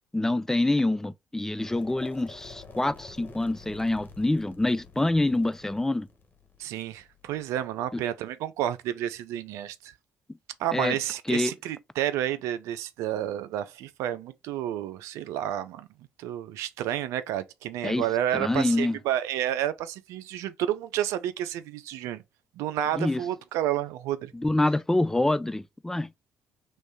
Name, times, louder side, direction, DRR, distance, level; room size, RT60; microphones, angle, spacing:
voice 1, 0.1-6.1 7.9-8.0 10.7-11.0 11.3-11.5 17.8-18.0 18.3-19.0 23.0-23.2 24.3-26.1, left 2 dB, 10° left, 0.4 m, -26 dB
sound 1, 1.5-7.5, left 3 dB, 40° left, 1.3 m, -48 dB
voice 2, 6.6-9.9 10.6-15.9 16.2-22.2 22.6-24.3, right 11 dB, 75° right, 0.5 m, -30 dB
3.2 x 3.1 x 4.3 m
hypercardioid pair, 60°, 5 cm